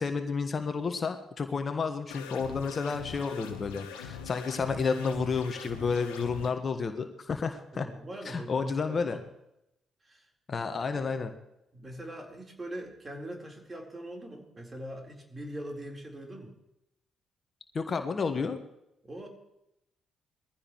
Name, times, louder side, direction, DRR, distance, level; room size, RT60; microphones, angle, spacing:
voice 1, 0.0-7.9 8.2-9.2 10.5-11.3 17.7-18.6, left 5 dB, 45° left, 7 dB, 1.4 m, -31 dB
sound 1, 2.1-6.5, left 7 dB, 80° left, 1.2 m, -42 dB
voice 2, 7.7-9.2 10.0-10.3 10.9-11.1 11.7-16.5 19.0-19.3, right 1 dB, 30° right, 1 dB, 4.1 m, -42 dB
21.5 x 15.5 x 3.2 m, 0.83 s
hypercardioid pair, 40°, 0 cm